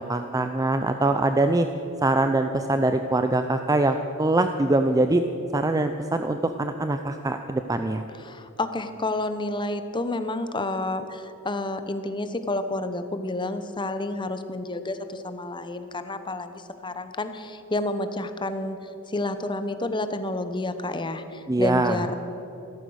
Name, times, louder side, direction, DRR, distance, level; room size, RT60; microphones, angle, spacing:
voice 1, 0.0-1.7 2.0-5.2 5.5-8.0 21.5-22.1, right 2 dB, 15° right, 7 dB, 0.5 m, -23 dB
voice 2, 8.2-22.1, left 2 dB, 20° left, 10 dB, 0.9 m, -30 dB
15.0 x 13.5 x 6.4 m, 3.0 s
head